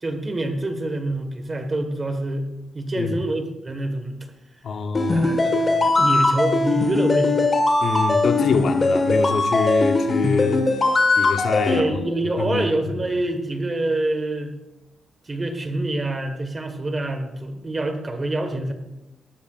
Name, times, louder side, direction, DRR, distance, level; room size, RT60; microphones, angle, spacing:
voice 1, 0.0-2.5 2.7-4.1 4.6-4.7 5.1-7.5 11.6-14.5 15.3-18.7, right 2 dB, 20° right, 1.5 m, -26 dB
voice 2, 4.6-5.3 7.8-10.8 11.2-11.8 12.4-13.0, left 5 dB, 50° left, 0.9 m, -25 dB
sound 1, 4.9-11.8, left 3 dB, 30° left, 1.6 m, -20 dB
19.0 x 12.5 x 2.5 m
wide cardioid pair, 155°, 0 cm